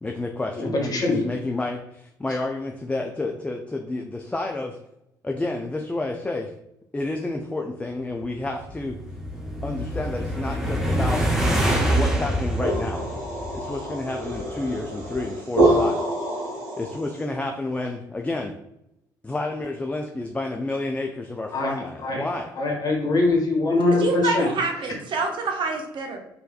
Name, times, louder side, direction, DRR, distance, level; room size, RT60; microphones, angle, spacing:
voice 1, 0.0-4.8 5.2-6.5 6.9-8.9 9.6-11.2 11.9-13.0 13.5-16.0 16.8-18.5 19.2-22.5, left 2 dB, 10° left, 3 dB, 0.4 m, -30 dB
voice 2, 0.6-1.2 21.5-21.7 22.0-22.2 22.6-24.5, left 2 dB, 40° left, 0 dB, 1.3 m, -22 dB
sound 1, 8.4-13.9, right 1 dB, 5° right, 0.8 m, -25 dB
sound 2, 12.2-17.2, right 1 dB, 90° right, 0.9 m, -26 dB
voice 3, 24.0-26.2, right 4 dB, 50° right, 3 dB, 0.7 m, -26 dB
4.0 x 2.6 x 2.4 m, 0.83 s
hypercardioid pair, 50°, 10 cm